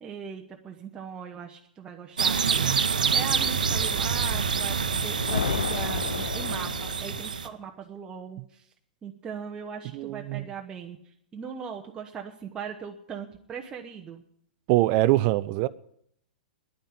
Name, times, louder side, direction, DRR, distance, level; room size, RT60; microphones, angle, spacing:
voice 1, 0.0-8.7 9.0-14.2, right 7 dB, 20° right, 1.0 m, -39 dB
sound 1, 2.2-7.5, right 6 dB, 75° right, 0.9 m, -26 dB
sound 2, 4.9-7.4, left 7 dB, 75° left, 0.5 m, -32 dB
voice 2, 9.9-10.5 14.7-15.7, right 17 dB, 40° right, 0.5 m, -23 dB
10.5 x 9.1 x 9.6 m
figure-of-eight pair, 105°, 4 cm